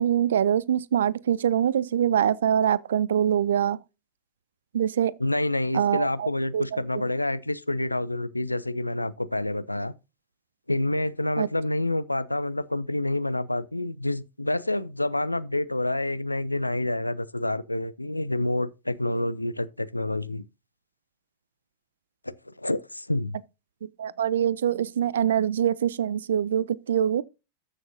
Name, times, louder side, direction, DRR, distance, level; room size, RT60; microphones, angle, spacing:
voice 1, 0.0-3.8 4.7-5.1 5.7-6.3 6.5-7.0 11.4-11.5 24.0-27.2, right 9 dB, 65° right, 0.4 m, -24 dB
voice 2, 5.2-9.9 10.7-20.4 22.2-23.4, left 1 dB, 85° left, 0.5 m, -28 dB
13.5 x 6.2 x 2.6 m
figure-of-eight pair, 90°, 0 cm